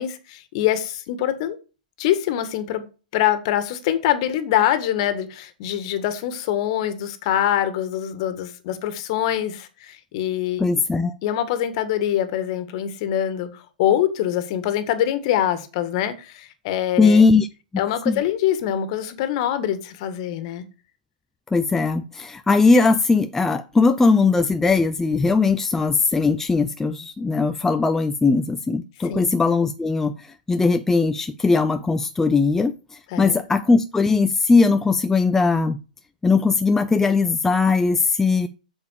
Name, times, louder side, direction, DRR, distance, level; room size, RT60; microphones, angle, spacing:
voice 1, 0.0-1.6 2.0-2.9 3.1-10.6 11.2-17.2 17.8-20.6 29.1-29.3 33.1-33.4, left 11 dB, 45° left, 1.9 m, -24 dB
voice 2, 10.6-11.2 17.0-17.5 18.1-18.2 21.5-32.7 33.2-35.8 36.2-38.5, left 4 dB, 10° left, 0.6 m, -19 dB
8.2 x 7.2 x 6.6 m
hypercardioid pair, 115°, 5 cm